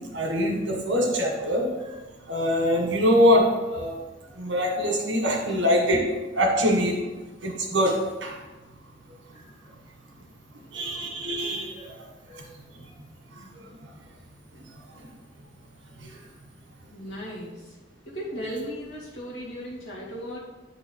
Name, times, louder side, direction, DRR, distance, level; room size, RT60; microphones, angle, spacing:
voice 1, 0.1-1.6 2.3-3.9 4.4-6.0 6.3-7.0 7.4-8.3 10.7-11.9 12.3-12.4, equal, 70° right, 1 dB, 1.6 m, -23 dB
voice 2, 16.9-17.8 18.1-20.4, equal, 75° left, -4 dB, 2.3 m, -36 dB
8.8 x 4.0 x 4.6 m, 1.2 s
head